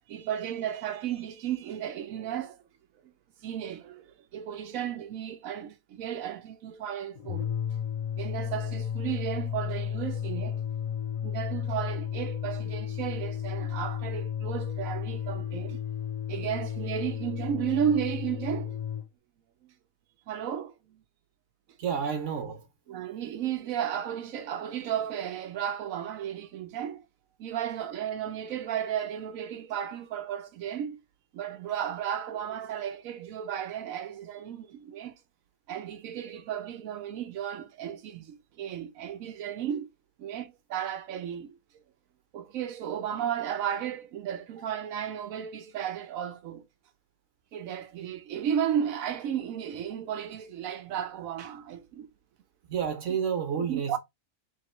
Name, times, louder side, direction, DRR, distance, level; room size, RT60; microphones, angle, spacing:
voice 1, 0.1-2.6 3.0-3.1 3.4-7.5 8.2-10.6 11.2-15.8 16.3-18.8 19.6-19.7 20.3-21.0 22.9-27.0 27.4-31.0 31.3-35.2 35.7-39.9 40.2-41.6 42.3-46.7 47.5-52.1 53.6-54.0, right 9 dB, 90° right, 1.1 m, -34 dB
sound 1, 7.2-19.1, left 9 dB, 45° left, 0.5 m, -33 dB
voice 2, 21.8-22.7 52.7-54.0, right 7 dB, 65° right, 1.3 m, -30 dB
3.5 x 2.9 x 4.3 m
omnidirectional pair, 1.4 m